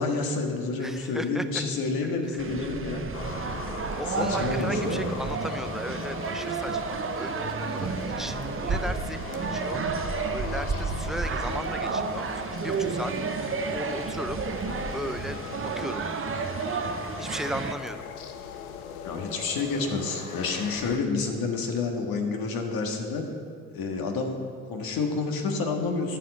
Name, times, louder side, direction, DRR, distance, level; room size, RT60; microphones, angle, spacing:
voice 1, 0.0-3.1 4.2-5.1 19.0-23.2 23.7-24.4 24.7-26.2, left 4 dB, 55° left, 2 dB, 1.9 m, -29 dB
voice 2, 0.8-1.6 2.0-2.5 4.0-10.0 10.3-14.4 14.9-16.1 17.2-18.0, equal, ahead, 9 dB, 0.6 m, -36 dB
sound 1, 2.4-17.7, right 5 dB, 30° right, 0.9 m, -31 dB
sound 2, 3.1-21.0, left 7 dB, 90° left, 0.7 m, -40 dB
13.5 x 4.8 x 7.9 m, 2.2 s
hypercardioid pair, 55°, 41 cm